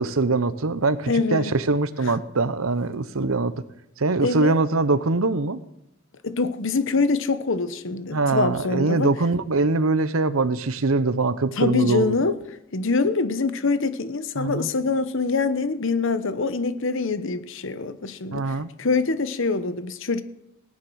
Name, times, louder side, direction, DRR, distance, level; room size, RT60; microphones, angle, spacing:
voice 1, 0.0-3.5 4.0-5.6 8.1-12.2 14.4-14.7 18.3-18.7, right 3 dB, 90° right, 0.9 m, -23 dB
voice 2, 1.1-1.5 2.0-2.1 4.2-4.5 6.2-9.1 11.6-12.4 12.7-20.2, left 4 dB, 65° left, 1.0 m, -24 dB
18.0 x 9.9 x 6.3 m
head